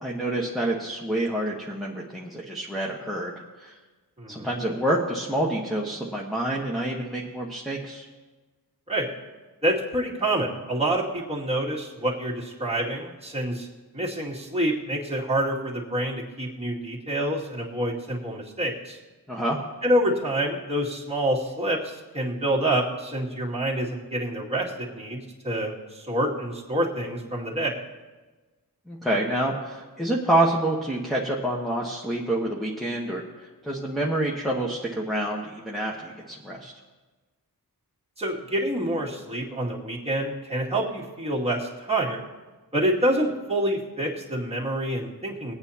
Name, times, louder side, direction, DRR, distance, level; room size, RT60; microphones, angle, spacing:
voice 1, 0.0-3.7 4.3-8.1 19.3-19.6 28.9-36.7, right 1 dB, ahead, -3 dB, 1.2 m, -27 dB
voice 2, 4.2-4.5 8.9-9.1 9.6-13.7 13.9-19.0 19.8-27.8 38.2-42.2 42.7-45.5, right 1 dB, 15° right, -6 dB, 2.3 m, -27 dB
22.5 x 8.7 x 2.9 m, 1.3 s
wide cardioid pair, 65°, 38 cm